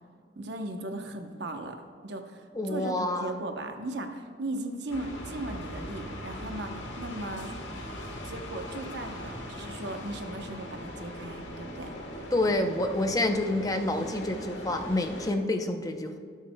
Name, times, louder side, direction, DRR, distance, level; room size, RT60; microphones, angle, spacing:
voice 1, 0.4-7.5 8.2-11.9, right 2 dB, 65° right, 5 dB, 0.9 m, -37 dB
voice 2, 2.5-3.4 12.3-16.2, left 1 dB, 20° left, 6 dB, 0.6 m, -28 dB
sound 1, 4.9-15.3, left 1 dB, 85° left, 1.3 m, -40 dB
18.0 x 7.4 x 2.2 m, 2.1 s
head